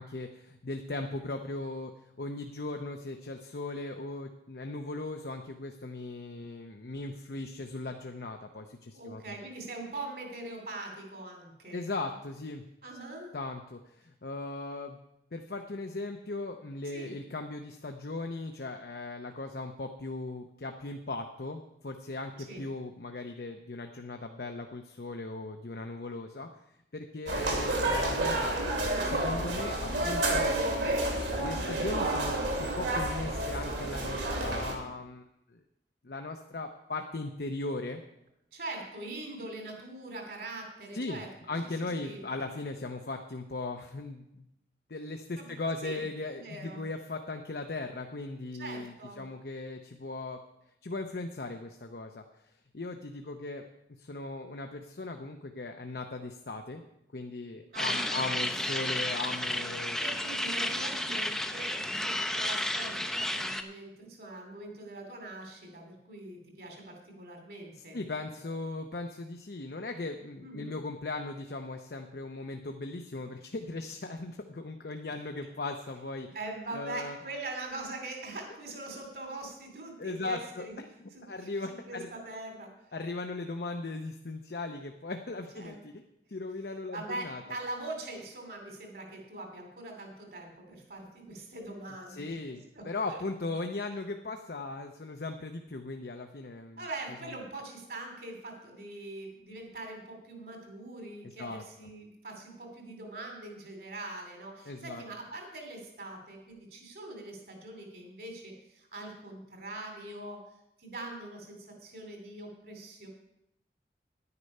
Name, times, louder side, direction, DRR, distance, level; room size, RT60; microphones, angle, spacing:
voice 1, 0.0-1.9 2.2-9.4 11.7-12.6 13.3-15.0 15.3-26.5 26.9-28.8 29.0-30.6 31.3-35.2 35.5-35.6 36.0-38.0 40.9-41.2 41.5-44.5 44.9-50.4 50.8-52.2 52.7-56.8 57.1-60.2 67.9-76.3 76.7-77.2 80.0-82.1 82.9-86.0 86.3-87.4 92.1-96.8 101.4-101.6 104.7-105.0, left 2 dB, 60° left, 4 dB, 0.7 m, -38 dB
voice 2, 8.9-11.8 12.8-13.3 16.9-17.1 22.5-22.6 38.5-42.2 45.4-45.5 45.8-46.0 46.3-46.8 48.6-49.2 57.7-58.2 60.0-68.0 70.4-70.7 76.3-80.8 81.1-81.5 81.9-82.7 85.5-85.8 86.9-92.4 92.7-93.2 96.8-110.4 110.8-113.1, right 2 dB, 60° right, 3 dB, 2.7 m, -42 dB
sound 1, 27.3-34.7, right 1 dB, 80° right, 2.5 m, -30 dB
sound 2, 57.7-63.6, left 1 dB, 5° left, 0.5 m, -32 dB
10.5 x 9.8 x 5.4 m, 0.84 s
head